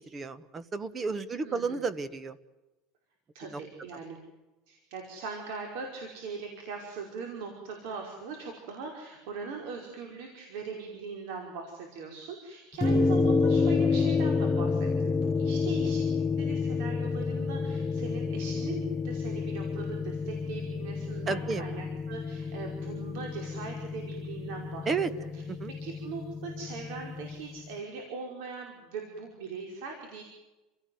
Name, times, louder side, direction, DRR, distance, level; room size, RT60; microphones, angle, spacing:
voice 1, 0.0-2.4 3.5-3.6 21.3-21.6 24.8-25.1 25.5-25.7, right 4 dB, 20° right, 15 dB, 1.4 m, -32 dB
voice 2, 1.3-1.8 3.3-4.2 4.7-25.1 25.3-30.2, right 5 dB, 70° right, 2 dB, 5.3 m, -40 dB
sound 1, 12.8-27.4, left 4 dB, 10° left, 0.9 m, -29 dB
29.0 x 17.5 x 9.5 m, 1.1 s
supercardioid pair, 145°, 0 cm